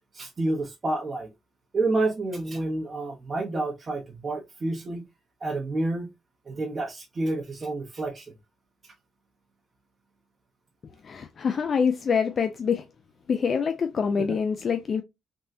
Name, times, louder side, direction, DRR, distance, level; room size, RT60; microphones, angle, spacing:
voice 1, 0.1-1.3 1.7-5.0 5.4-6.1 6.5-8.3 14.2-14.4, right 2 dB, 35° right, 0.7 m, -29 dB
voice 2, 11.0-12.8 13.3-15.0, left 6 dB, 50° left, 0.4 m, -25 dB
3.5 x 2.1 x 2.5 m
cardioid pair, 90°, 0 cm